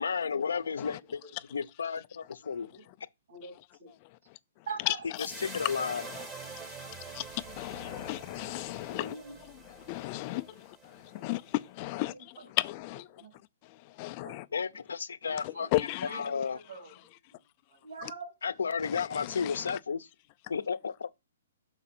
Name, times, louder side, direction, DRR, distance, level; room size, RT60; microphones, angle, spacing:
voice 1, 0.0-1.2 1.5-2.7 5.2-6.0 14.5-16.6 18.4-20.1 20.5-21.1, left 6 dB, 90° left, 0.6 m, -33 dB
voice 2, 1.0-1.3 2.4-2.9 3.3-3.9 4.7-5.1 8.9-9.4 10.2-10.6 10.9-11.3 12.0-12.5 13.0-13.4 14.2-14.6 15.3-16.9 17.7-18.4, right 4 dB, 70° right, 3.5 m, -46 dB
sound 1, 5.2-11.5, right 3 dB, 15° right, 0.9 m, -46 dB
voice 3, 7.1-9.1 9.9-10.5 11.0-12.1 12.6-13.0 14.0-14.4 15.7-16.1 18.9-19.6, left 19 dB, 30° left, 0.4 m, -33 dB
6.5 x 4.9 x 4.3 m
hypercardioid pair, 155°, 0 cm